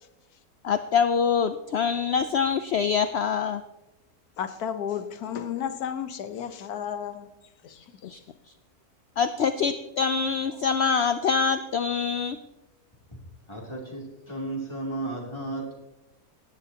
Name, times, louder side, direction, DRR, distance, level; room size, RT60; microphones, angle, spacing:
voice 1, 0.6-3.6 8.0-8.2 9.2-12.4, left 6 dB, 70° left, 0.6 m, -25 dB
voice 2, 4.4-7.3 7.6-7.8 8.1-8.2, left 8 dB, 85° left, 1.4 m, -33 dB
voice 3, 13.5-15.7, right 2 dB, 20° left, 2.8 m, -34 dB
17.0 x 11.0 x 2.8 m
omnidirectional pair, 1.6 m